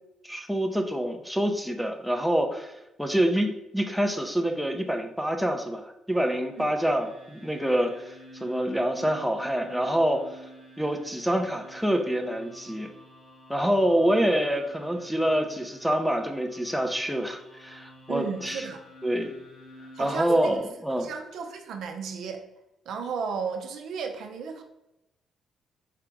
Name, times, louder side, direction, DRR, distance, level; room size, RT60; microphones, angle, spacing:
voice 1, 0.2-2.7 3.0-7.9 8.4-10.3 10.8-12.9 13.5-18.6 19.0-19.3 20.0-21.1, equal, ahead, 3 dB, 0.6 m, -26 dB
sound 1, 6.3-20.6, equal, 60° left, 1.2 m, -50 dB
voice 2, 18.1-18.8 19.9-20.5 20.9-22.4 22.9-24.6, right 5 dB, 75° right, 4 dB, 0.6 m, -34 dB
4.8 x 2.8 x 3.5 m, 0.91 s
cardioid pair, 90°, 0 cm